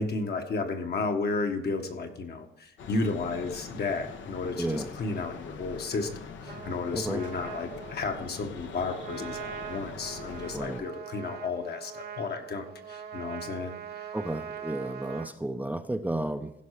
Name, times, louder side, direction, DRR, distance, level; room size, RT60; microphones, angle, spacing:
voice 1, 0.0-13.7, left 3 dB, 55° left, 4 dB, 1.6 m, -33 dB
sound 1, 2.8-10.8, left 5 dB, 75° left, 1.2 m, -43 dB
voice 2, 4.6-4.9 6.9-7.2 10.5-10.9 14.1-16.5, right 1 dB, 10° right, 7 dB, 0.6 m, -32 dB
Trumpet, 6.4-15.3, right 8 dB, 55° right, 1.1 m, -42 dB
16.0 x 5.5 x 4.9 m, 0.83 s
cardioid pair, 90°, 20 cm